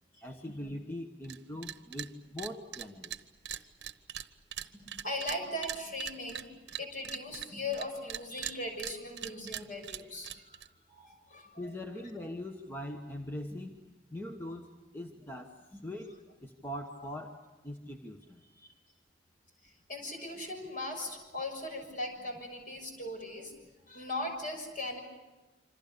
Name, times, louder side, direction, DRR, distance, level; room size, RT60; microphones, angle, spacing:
voice 1, 0.2-3.1 11.6-13.7 14.1-16.1 16.4-17.4 17.6-18.4, left 1 dB, 10° left, 2 dB, 1.2 m, -41 dB
sound 1, 1.2-1.4 1.6-2.1 2.4-7.8 8.1-10.7, right 11 dB, 65° right, 1.0 m, -40 dB
voice 2, 4.7-10.6 10.9-11.6 15.7-15.8 18.6-18.7 19.6-23.5 23.9-25.0, left 1 dB, 45° left, 4 dB, 6.6 m, -39 dB
27.0 x 26.0 x 6.9 m, 1.2 s
head